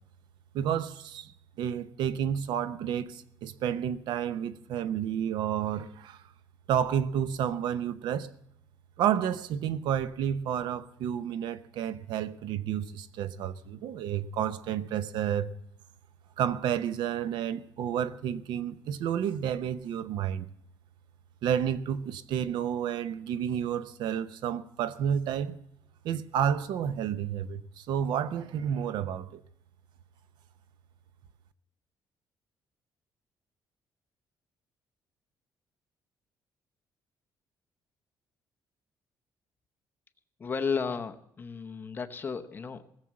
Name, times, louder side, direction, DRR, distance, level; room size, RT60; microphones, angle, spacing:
voice 1, 0.5-1.3 1.6-6.2 6.7-8.3 9.0-15.5 16.4-20.4 21.4-25.6 26.0-29.4, right 9 dB, 85° right, 0.8 m, -30 dB
voice 2, 40.4-42.8, left 5 dB, 25° left, 0.8 m, -33 dB
19.0 x 7.4 x 7.4 m
cardioid pair, 155°, 8 cm